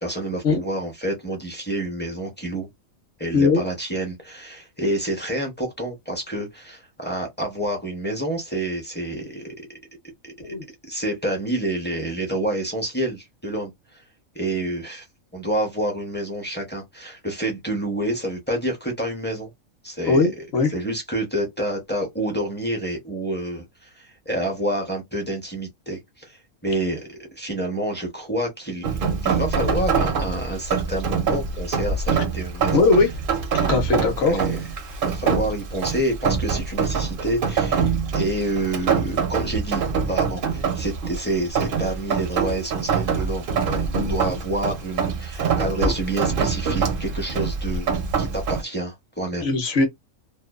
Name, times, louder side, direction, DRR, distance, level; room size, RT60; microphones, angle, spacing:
voice 1, 0.0-2.7 3.2-9.8 10.2-10.5 10.9-14.0 14.3-15.1 15.3-19.5 19.8-33.1 34.2-34.7 35.0-49.5, right 1 dB, 15° left, 0.4 m, -28 dB
voice 2, 20.1-20.7 32.7-33.1 33.5-34.4 49.4-49.9, left 3 dB, 60° left, 0.8 m, -19 dB
Rain, 28.8-48.6, right 5 dB, 60° right, 0.6 m, -25 dB
2.5 x 2.2 x 2.3 m
omnidirectional pair, 1.4 m